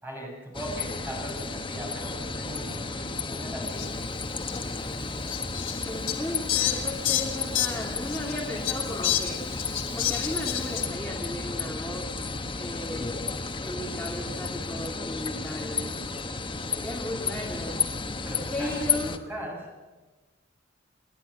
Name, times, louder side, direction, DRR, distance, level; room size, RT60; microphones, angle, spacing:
voice 1, 0.0-3.9 4.6-5.0 18.2-18.7 19.1-19.7, equal, 10° right, -1 dB, 6.8 m, -39 dB
sound 1, 0.5-19.2, left 4 dB, 25° left, 1.2 m, -33 dB
Fowl, 3.8-3.9 4.4-4.6 5.3-8.3 8.6-10.9, left 11 dB, 75° left, 2.8 m, -29 dB
voice 2, 5.9-9.4 9.9-12.3 12.6-13.2 13.6-16.0 16.7-17.8 18.5-19.2, left 1 dB, 10° left, -3 dB, 2.4 m, -35 dB
29.0 x 11.0 x 8.8 m, 1.3 s
head